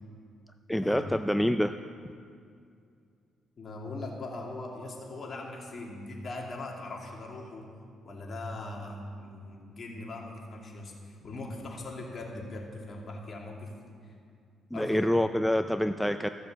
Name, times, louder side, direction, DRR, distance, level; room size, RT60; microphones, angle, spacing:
voice 1, 0.7-1.7 14.7-16.3, equal, 5° left, 9 dB, 0.4 m, -26 dB
voice 2, 3.6-7.7 8.0-13.7 14.7-15.0 15.3-15.5, left 2 dB, 45° left, -1 dB, 2.5 m, -40 dB
14.5 x 6.7 x 7.6 m, 2.3 s
cardioid pair, 90°, 0 cm